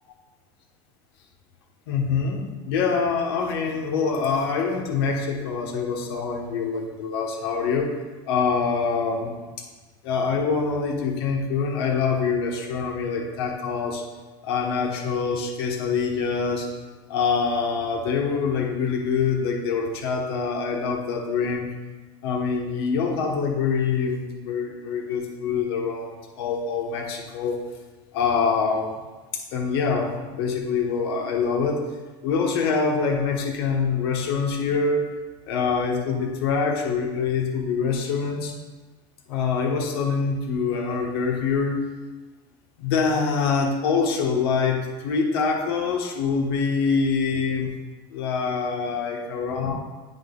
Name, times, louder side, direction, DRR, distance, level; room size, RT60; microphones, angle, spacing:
voice 1, 1.9-7.9 8.3-9.7 10.0-14.0 14.4-16.7 17.1-21.7 22.2-27.6 28.1-29.0 29.3-31.8 32.2-35.1 35.5-38.5 39.3-41.8 42.8-47.7 48.1-49.7, left 5 dB, 75° left, 0 dB, 1.3 m, -25 dB
9.5 x 3.9 x 3.9 m, 1.2 s
supercardioid pair, 140°, 13 cm